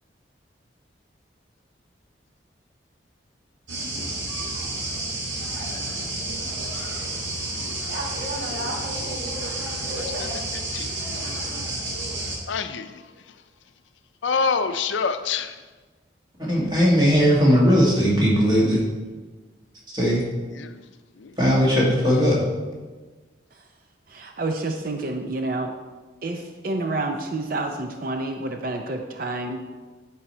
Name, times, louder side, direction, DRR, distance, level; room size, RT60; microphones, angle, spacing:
sound 1, 3.7-12.4, right 2 dB, 75° right, 1.9 m, -30 dB
voice 1, 9.9-10.9 11.5-11.7 12.5-13.4 14.2-15.6 20.5-20.9 21.2-21.4, left 5 dB, 80° left, 0.5 m, -28 dB
voice 2, 16.4-18.8 19.9-20.2 21.4-22.4, equal, 25° right, 1.9 m, -18 dB
voice 3, 24.1-25.7 26.2-29.6, right 2 dB, 50° right, 0.5 m, -29 dB
9.6 x 4.7 x 4.3 m
head